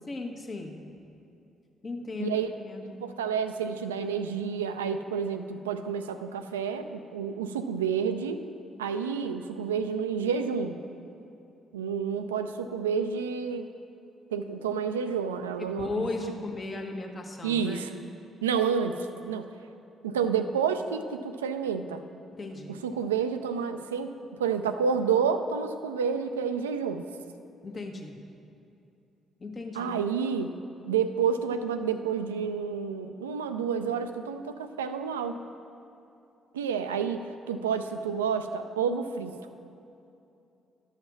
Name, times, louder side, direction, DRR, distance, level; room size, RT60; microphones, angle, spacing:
voice 1, 0.1-0.8 1.8-3.0 15.8-17.8 22.3-22.7 27.6-28.2 29.4-29.9, left 3 dB, 40° left, 2 dB, 1.2 m, -36 dB
voice 2, 3.0-8.4 8.8-10.8 11.7-13.7 14.3-16.3 17.4-17.9 18.4-19.5 20.0-22.0 22.7-27.0 29.7-30.5 30.8-35.4 36.5-39.4, right 6 dB, 85° right, 9 dB, 0.4 m, -29 dB
12.0 x 5.7 x 6.0 m, 2.7 s
figure-of-eight pair, 45°, 0 cm